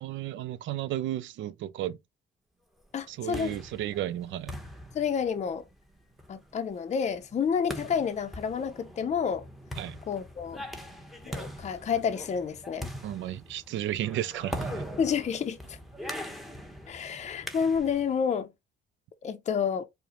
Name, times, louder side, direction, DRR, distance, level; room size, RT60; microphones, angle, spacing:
voice 1, 0.0-2.0 3.1-4.6 9.8-10.0 13.0-14.8, right 12 dB, 75° right, 0.4 m, -33 dB
voice 2, 2.9-3.5 4.9-5.6 6.3-9.5 10.1-10.6 11.3-12.9 15.0-15.8 16.9-18.5 19.2-19.8, left 7 dB, 35° left, 0.5 m, -29 dB
sound 1, 3.0-18.2, equal, ahead, 0.9 m, -42 dB
4.7 x 2.1 x 2.8 m
cardioid pair, 90°, 20 cm